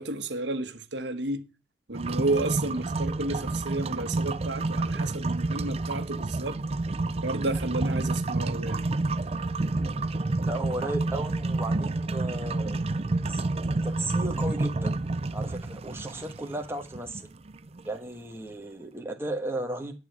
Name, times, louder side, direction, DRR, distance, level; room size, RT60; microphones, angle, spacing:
voice 1, 0.0-1.4 1.9-6.6 7.2-8.9, right 2 dB, 90° right, 1.5 m, -31 dB
sound 1, 1.9-17.9, right 2 dB, 35° right, 0.5 m, -29 dB
voice 2, 10.5-12.8 13.3-14.9 15.3-17.3 17.8-19.9, right 1 dB, 15° right, 1.4 m, -35 dB
11.5 x 4.7 x 8.1 m
head